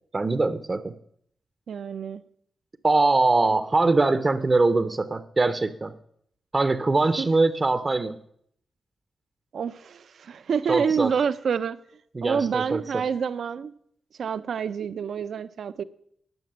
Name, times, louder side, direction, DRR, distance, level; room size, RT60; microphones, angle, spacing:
voice 1, 0.1-0.9 2.8-5.9 6.5-8.2 10.7-11.1 12.1-13.0, right 3 dB, 30° right, 0.6 m, -22 dB
voice 2, 1.7-2.2 7.2-7.3 9.5-11.8 12.2-13.7 14.2-15.8, right 6 dB, 75° right, 0.6 m, -27 dB
11.0 x 5.9 x 8.6 m
cardioid pair, 95°, 0 cm